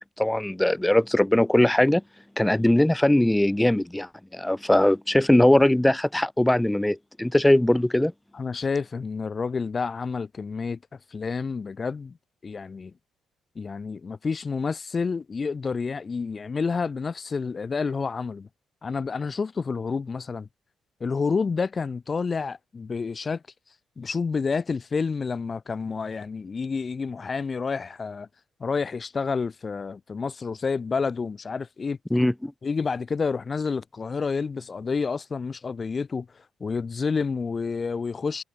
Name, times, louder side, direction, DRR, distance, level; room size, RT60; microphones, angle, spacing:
voice 1, 0.0-2.0 2.4-8.1 32.1-32.5, left 1 dB, 10° left, 0.9 m, -20 dB
voice 2, 8.3-10.8 11.1-12.2 12.4-12.9 13.6-18.5 18.8-20.5 21.0-23.4 24.0-28.3 28.6-32.0 32.6-36.3 36.6-38.4, left 5 dB, 35° left, 3.7 m, -29 dB
cardioid pair, 90°, 0 cm